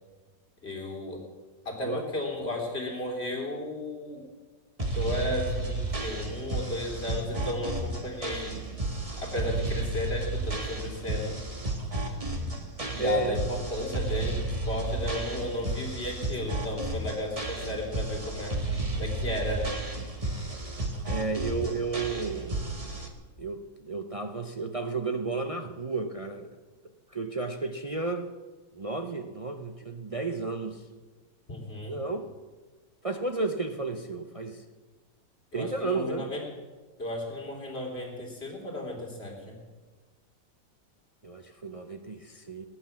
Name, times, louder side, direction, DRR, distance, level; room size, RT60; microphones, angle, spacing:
voice 1, 0.6-1.2 1.7-4.2 4.9-8.6 9.2-11.4 12.9-18.6 19.0-19.8 31.5-32.0 35.5-36.4 37.0-39.6, left 1 dB, 35° left, -1 dB, 3.7 m, -34 dB
sound 1, 4.8-23.1, right 2 dB, 20° right, 1.5 m, -32 dB
voice 2, 13.0-13.4 21.0-22.5 23.4-26.5 27.1-28.3 28.7-30.8 31.9-32.3 33.0-34.6 35.5-36.2 41.2-42.6, right 3 dB, 55° right, 5 dB, 0.3 m, -32 dB
19.0 x 10.0 x 7.3 m, 1.3 s
omnidirectional pair, 1.9 m